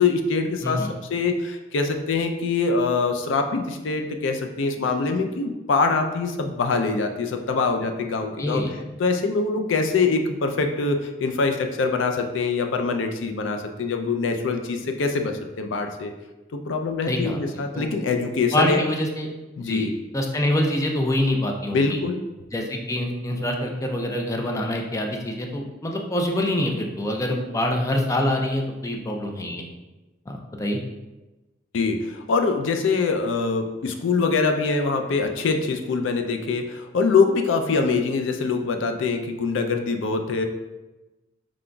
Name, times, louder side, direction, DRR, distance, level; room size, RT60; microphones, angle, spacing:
voice 1, 0.0-8.6 9.0-16.1 16.5-18.8 19.6-19.9 21.7-22.2 31.7-40.5, left 4 dB, 90° left, 5 dB, 0.4 m, -24 dB
voice 2, 8.4-8.7 17.1-17.9 18.5-19.3 19.7-19.9 20.1-22.0 22.5-29.7 30.3-30.8, left 1 dB, 15° left, 2 dB, 0.4 m, -25 dB
4.9 x 3.7 x 2.2 m, 1.1 s
head